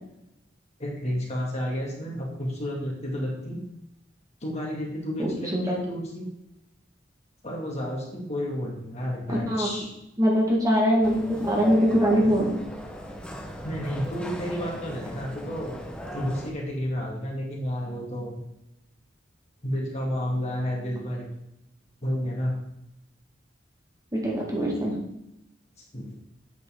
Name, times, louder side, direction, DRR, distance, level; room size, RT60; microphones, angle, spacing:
voice 1, 0.8-3.6 4.4-6.3 7.4-9.9 13.6-15.8 16.1-18.4 19.6-21.3 22.0-22.6 25.9-26.1, equal, 35° left, -2 dB, 2.3 m, -31 dB
voice 2, 5.2-5.6 9.3-9.8 10.2-12.5 24.1-25.0, equal, 20° right, -2 dB, 1.9 m, -23 dB
sound 1, 11.0-16.5, equal, 5° left, 1.0 m, -36 dB
8.4 x 7.7 x 3.8 m, 0.84 s
head